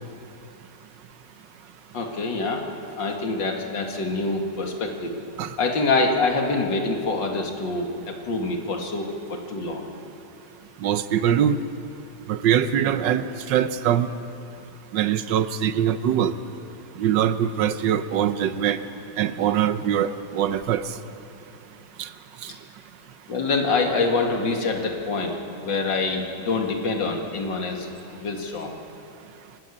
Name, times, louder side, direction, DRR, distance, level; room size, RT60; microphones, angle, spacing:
voice 1, 1.9-2.7 3.0-5.1 5.6-9.9 23.3-28.7, left 3 dB, 80° left, 2 dB, 2.6 m, -25 dB
voice 2, 10.8-11.6 12.3-14.1 14.9-16.3 17.0-18.8 19.2-20.9 22.0-22.1, right 9 dB, 85° right, 12 dB, 1.5 m, -22 dB
24.5 x 13.0 x 9.8 m, 2.8 s
omnidirectional pair, 1.9 m